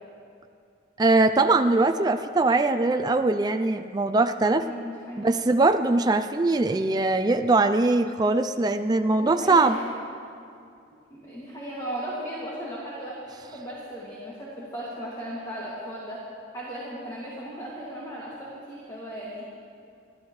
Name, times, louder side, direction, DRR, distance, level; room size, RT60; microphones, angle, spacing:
voice 1, 1.0-4.6 5.2-9.8, right 2 dB, 20° right, 8 dB, 0.4 m, -21 dB
voice 2, 4.6-5.3 9.2-10.0 11.1-13.2 13.4-16.2 16.5-19.5, equal, 20° left, -7 dB, 2.3 m, -36 dB
28.0 x 12.0 x 3.2 m, 2.4 s
head